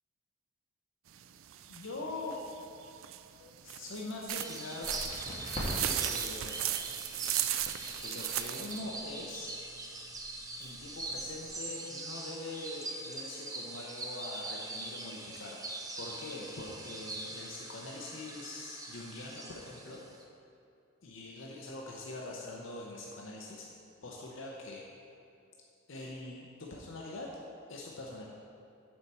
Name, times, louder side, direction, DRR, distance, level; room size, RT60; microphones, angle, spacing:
sound 1, 1.1-8.8, right 12 dB, 70° right, 0.3 m, -36 dB
voice 1, 1.7-2.4 3.4-4.9 5.8-6.6 8.0-9.5 10.6-15.6 16.0-20.0 21.0-23.7 24.0-24.8 25.9-27.4 27.7-28.3, left 2 dB, 60° left, -2 dB, 0.7 m, -43 dB
sound 2, 4.3-20.2, right 2 dB, 15° right, 0.5 m, -42 dB
Crackle, 4.8-11.5, equal, 25° left, 1.8 m, -45 dB
7.8 x 4.3 x 6.7 m, 2.6 s
head